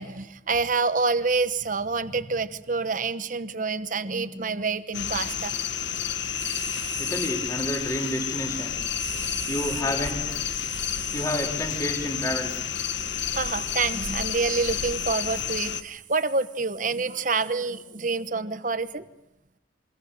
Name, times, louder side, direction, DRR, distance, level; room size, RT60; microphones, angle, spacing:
voice 1, 0.0-5.6 6.0-7.1 9.0-9.6 10.7-11.0 13.3-19.0, right 4 dB, 40° right, 12 dB, 1.0 m, -28 dB
sound 1, 4.9-15.8, left 8 dB, 65° left, 1.2 m, -30 dB
voice 2, 7.0-8.8 9.5-10.4 11.1-12.5, equal, 15° left, 1 dB, 3.5 m, -30 dB
27.0 x 24.5 x 6.7 m, 0.92 s
head